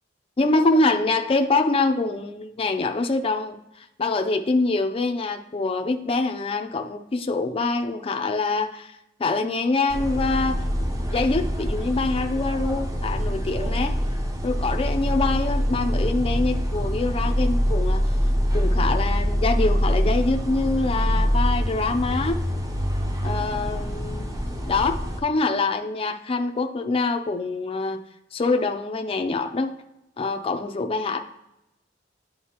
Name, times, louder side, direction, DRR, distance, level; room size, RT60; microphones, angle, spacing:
voice 1, 0.4-8.9 9.2-10.6 11.1-13.9 14.4-18.0 18.5-22.4 23.2-24.3 24.7-28.0 28.3-29.8 30.2-31.2, left 3 dB, 30° left, 5 dB, 0.4 m, -25 dB
sound 1, 9.9-25.2, equal, 20° right, 0.7 m, -24 dB
10.0 x 3.9 x 2.9 m, 0.89 s
head